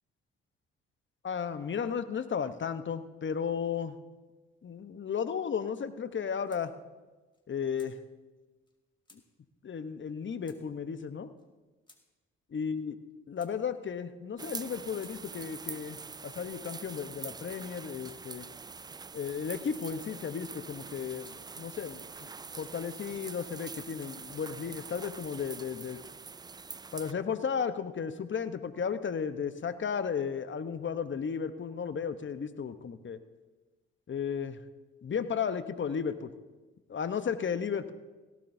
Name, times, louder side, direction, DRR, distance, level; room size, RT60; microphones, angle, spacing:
voice 1, 1.2-4.0 4.6-6.7 7.5-8.0 9.6-11.3 12.5-12.9 13.3-18.5 19.1-22.3 22.6-26.0 26.9-33.2 34.1-34.6 35.0-36.3 36.9-37.9, left 6 dB, 40° left, 11 dB, 1.0 m, -34 dB
sound 1, 6.1-6.7 7.0-7.1 7.3-7.9 8.7-8.8 9.0-9.2 10.0-10.2 10.4-10.6 11.4-11.5 11.9-12.0 12.8-13.6 14.3-15.2 16.0-16.3 16.6-16.8 17.5-18.2 19.1-19.2 19.7-19.9 20.7-21.4 22.1-22.8 23.4-24.2 24.9-25.5, left 2 dB, 15° left, 2.0 m, -62 dB
sound 2, 14.4-27.1, right 4 dB, 15° right, 0.3 m, -44 dB
17.5 x 15.5 x 2.7 m, 1.2 s
hypercardioid pair, 50°, 29 cm